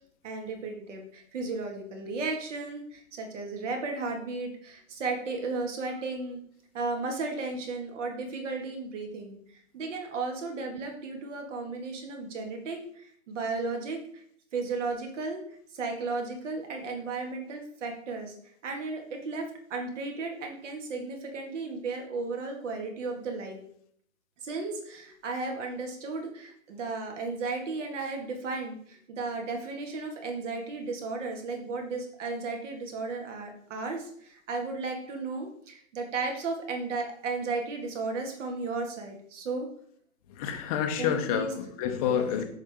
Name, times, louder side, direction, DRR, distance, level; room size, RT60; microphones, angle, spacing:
voice 1, 0.2-6.4 6.7-14.2 14.5-18.3 18.6-23.6 24.4-39.7 41.0-41.5 42.1-42.3, right 3 dB, 60° right, 3 dB, 2.0 m, -34 dB
voice 2, 40.4-42.4, left 8 dB, 25° left, 5 dB, 0.7 m, -28 dB
6.9 x 5.3 x 3.6 m, 0.64 s
hypercardioid pair, 150°, 42 cm